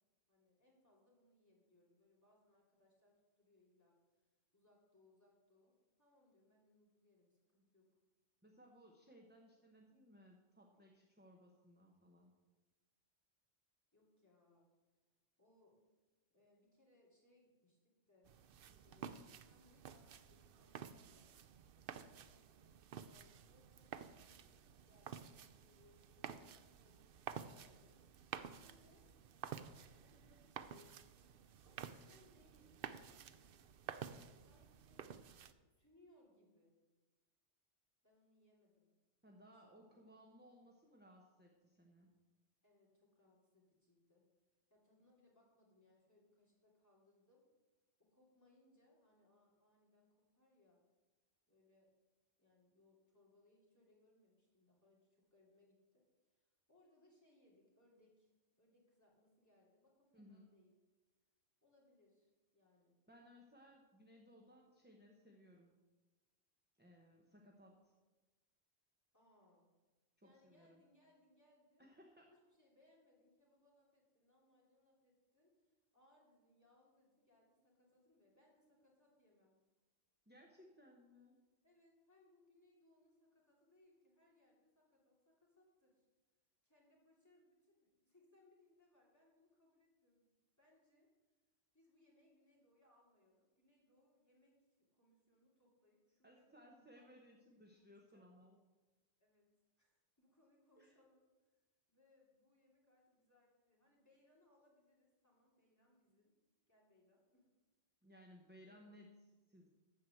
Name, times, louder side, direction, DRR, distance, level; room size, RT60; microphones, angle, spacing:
voice 1, 0.3-4.3 4.5-7.9 13.9-14.7 15.4-15.8 16.3-18.3 18.6-21.4 21.9-28.2 28.5-29.1 30.0-31.0 31.6-33.7 34.5-35.2 35.7-36.8 38.0-38.9 39.4-40.0 42.6-44.2 44.7-47.5 48.0-50.8 51.5-51.9 52.4-56.0 56.3-58.3 58.6-60.7 61.6-62.9 69.1-69.7 70.2-71.9 72.3-79.5 81.6-86.0 86.6-90.3 90.6-91.1 91.7-97.1 97.4-97.6 97.9-98.3 99.2-99.5 99.8-101.5 101.9-106.3 106.7-107.5 108.6-108.8, left 1 dB, 15° left, -4 dB, 3.0 m, -73 dB
voice 2, 8.4-12.3 39.2-42.2 60.1-60.5 63.1-65.7 66.8-67.9 70.2-70.8 71.8-72.3 80.3-81.4 96.2-98.6 100.8-100.9 108.0-109.7, equal, 10° right, 0 dB, 0.9 m, -63 dB
sound 1, 18.3-35.5, right 8 dB, 60° right, 0.6 m, -52 dB
13.0 x 4.7 x 7.7 m, 1.2 s
omnidirectional pair, 1.3 m